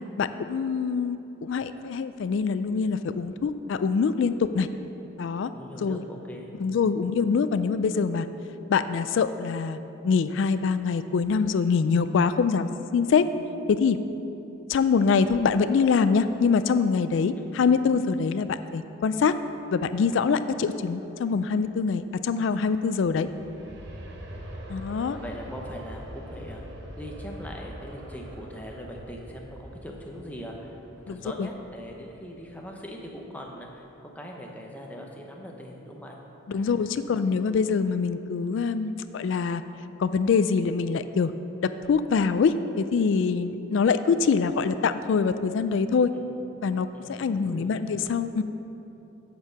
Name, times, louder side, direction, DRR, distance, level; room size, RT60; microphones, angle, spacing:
voice 1, 0.2-4.7 5.2-5.5 5.8-6.0 6.6-8.3 8.7-9.8 10.0-13.2 13.7-14.0 14.7-19.3 19.7-23.3 24.7-25.2 31.1-31.5 36.5-39.6 40.0-41.3 41.6-46.1 46.6-48.4, left 5 dB, 60° left, 11 dB, 0.3 m, -24 dB
voice 2, 5.5-6.8 17.4-17.5 24.2-24.5 24.9-30.8 31.1-36.2 36.5-36.8 37.1-37.2 46.1-46.3 46.9-47.9, equal, 5° left, 0 dB, 0.7 m, -41 dB
Aircraft, 22.6-33.3 33.7-33.8, equal, 55° right, 0.9 m, -43 dB
8.4 x 4.5 x 7.3 m, 2.9 s
head